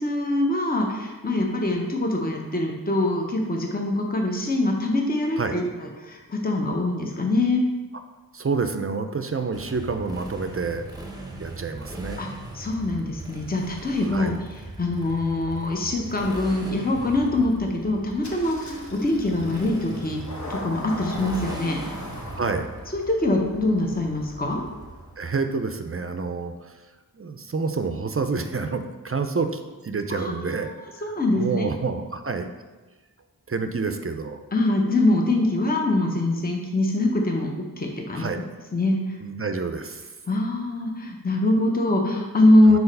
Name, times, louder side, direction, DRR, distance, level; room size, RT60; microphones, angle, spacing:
voice 1, 0.0-5.6 6.0-7.6 12.2-12.3 12.5-14.4 14.8-20.2 20.5-21.8 22.9-24.6 30.1-31.7 34.5-38.3 38.7-39.2 40.3-42.8, left 2 dB, 25° left, 1 dB, 0.8 m, -23 dB
voice 2, 8.3-10.8 11.4-12.2 14.0-14.3 22.4-22.7 25.2-26.5 27.1-30.7 31.4-32.5 33.5-34.4 38.1-38.4 39.2-40.1 42.6-42.8, right 4 dB, 35° right, 7 dB, 0.5 m, -28 dB
Motorcycle, 9.5-25.3, right 2 dB, 10° right, 0.9 m, -39 dB
Engine starting, 18.2-25.5, left 1 dB, 50° left, 1.1 m, -40 dB
4.7 x 4.1 x 5.3 m, 1.2 s
wide cardioid pair, 60°, 38 cm